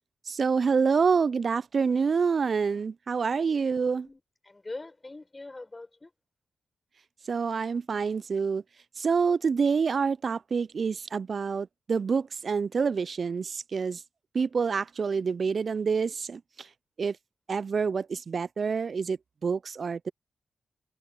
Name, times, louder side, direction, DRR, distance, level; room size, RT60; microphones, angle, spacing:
voice 1, 0.3-4.1 7.3-8.6 9.0-14.0 14.3-16.4 17.0-17.2 17.5-19.2 19.4-20.1, right 5 dB, 60° right, 0.4 m, -27 dB
voice 2, 4.0-6.1, left 2 dB, 30° left, 5.4 m, -43 dB
open air
supercardioid pair, 45°, 0 cm